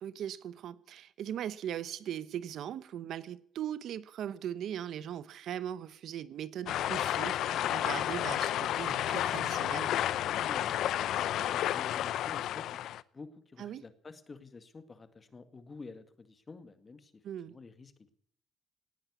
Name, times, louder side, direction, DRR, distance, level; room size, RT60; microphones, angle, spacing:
voice 1, 0.0-10.0 13.6-13.8 17.2-17.5, right 10 dB, 75° right, 0.8 m, -39 dB
sound 1, 6.7-13.0, left 12 dB, 75° left, 0.6 m, -31 dB
voice 2, 10.5-17.1 17.4-18.1, left 4 dB, 35° left, 2.1 m, -50 dB
18.5 x 9.2 x 8.2 m
cardioid pair, 80°, 0 cm